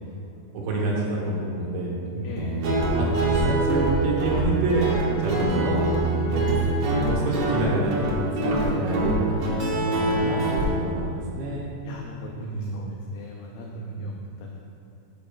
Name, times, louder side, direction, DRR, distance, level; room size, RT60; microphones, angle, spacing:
voice 1, 0.5-2.5 3.0-4.9 5.2-5.8 6.3-6.5 7.0-8.2 8.4-9.5 9.8-11.7 12.4-12.9 13.7-14.1, right 2 dB, 70° right, -5 dB, 3.1 m, -28 dB
voice 2, 2.2-2.7 8.6-8.8 11.8-14.6, left 4 dB, 80° left, 0 dB, 2.3 m, -41 dB
Guitar, 2.4-10.6, right 2 dB, 85° right, 1.4 m, -24 dB
12.5 x 7.7 x 2.2 m, 2.6 s
omnidirectional pair, 4.9 m